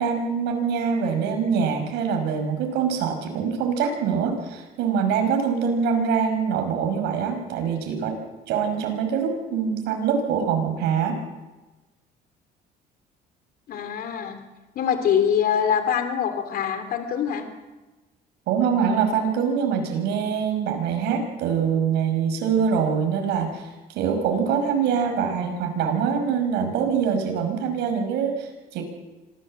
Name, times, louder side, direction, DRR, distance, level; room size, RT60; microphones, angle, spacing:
voice 1, 0.0-8.2 8.5-11.2 18.5-28.8, right 6 dB, 90° right, 5 dB, 5.6 m, -24 dB
voice 2, 13.7-14.4 14.7-17.4, left 8 dB, 65° left, 7 dB, 3.2 m, -24 dB
26.0 x 16.5 x 7.6 m, 1.1 s
cardioid pair, 110°, 17 cm